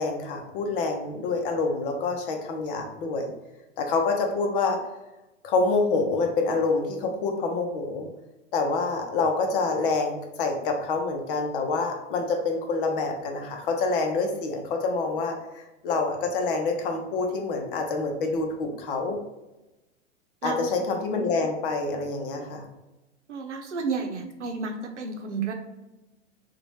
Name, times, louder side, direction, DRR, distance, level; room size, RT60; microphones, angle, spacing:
voice 1, 0.0-3.3 3.8-4.8 5.4-8.1 8.5-19.2 20.4-22.7, left 3 dB, 50° left, 3 dB, 0.8 m, -27 dB
voice 2, 23.3-25.5, right 4 dB, 75° right, 3 dB, 0.8 m, -31 dB
3.9 x 2.5 x 3.1 m, 1.0 s
figure-of-eight pair, 95°, 36 cm